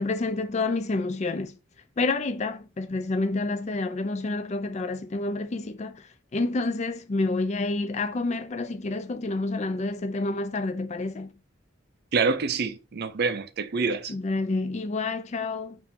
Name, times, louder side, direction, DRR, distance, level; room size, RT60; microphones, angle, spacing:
voice 1, 0.0-1.6 2.0-6.0 6.3-11.3 14.1-15.8, left 3 dB, 35° left, 0.4 m, -28 dB
voice 2, 12.1-14.1, right 4 dB, 50° right, 0.5 m, -26 dB
4.5 x 2.6 x 3.6 m
head